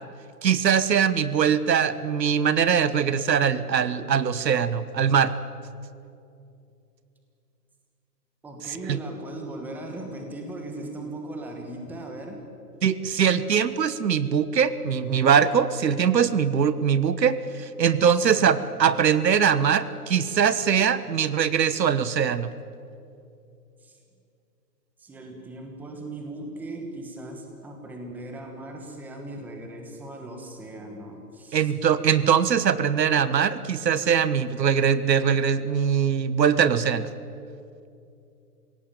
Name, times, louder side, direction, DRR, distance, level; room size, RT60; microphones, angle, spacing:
voice 1, 0.4-5.3 8.9-9.0 12.8-22.5 31.5-37.1, right 7 dB, 85° right, 15 dB, 1.4 m, -22 dB
voice 2, 8.4-12.4 18.0-18.6 23.8-24.0 25.0-31.7, right 1 dB, 5° right, 3 dB, 1.3 m, -38 dB
26.5 x 17.0 x 9.1 m, 2.6 s
hypercardioid pair, 165°, 49 cm